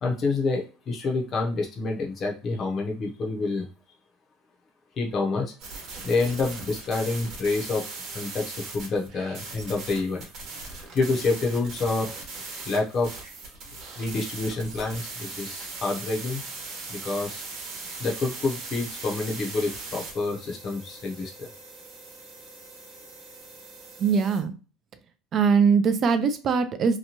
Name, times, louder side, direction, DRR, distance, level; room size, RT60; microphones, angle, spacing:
voice 1, 0.0-3.7 5.0-5.5 6.0-7.9 8.1-10.2 10.9-12.1 12.7-13.1 14.0-16.4 16.9-17.4 18.0-21.5, left 3 dB, 35° left, -1 dB, 0.7 m, -28 dB
sound 1, 5.6-24.4, right 3 dB, 55° right, 1.0 m, -40 dB
voice 2, 24.0-24.5 25.3-27.0, right 6 dB, 35° right, 10 dB, 0.4 m, -21 dB
2.9 x 2.2 x 2.8 m, 0.35 s
cardioid pair, 140°, 0 cm